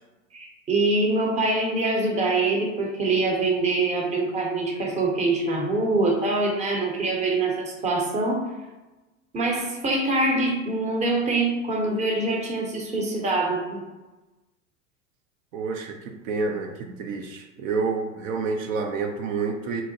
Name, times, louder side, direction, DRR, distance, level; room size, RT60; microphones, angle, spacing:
voice 1, 0.3-8.4 9.3-13.8, right 2 dB, 20° right, -1 dB, 0.6 m, -24 dB
voice 2, 15.5-19.8, right 4 dB, 75° right, 3 dB, 0.5 m, -29 dB
2.7 x 2.1 x 2.7 m, 1.1 s
hypercardioid pair, 90°, 40 cm